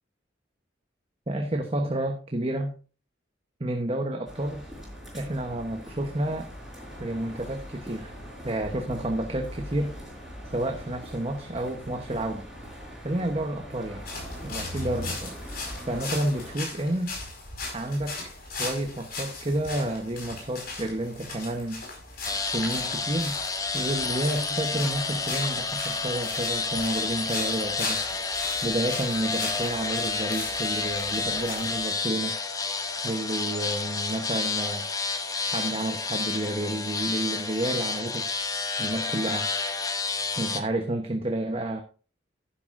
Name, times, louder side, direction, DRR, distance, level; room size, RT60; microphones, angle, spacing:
voice 1, 1.3-2.8 3.6-4.7 5.1-6.5 7.0-8.1 8.4-10.0 10.5-12.5 13.0-14.0 14.4-15.4 15.9-17.2 17.7-21.8 22.4-23.4 23.7-28.0 28.6-32.3 33.0-34.9 35.4-38.4 38.8-39.5 40.4-41.8, right 1 dB, 30° right, 1.0 m, -30 dB
sound 1, 4.3-16.5, equal, ahead, 5.3 m, -41 dB
sound 2, 14.0-31.9, left 3 dB, 55° left, 4.9 m, -38 dB
sound 3, 22.3-40.6, left 4 dB, 20° left, 0.9 m, -30 dB
11.0 x 11.0 x 2.6 m
head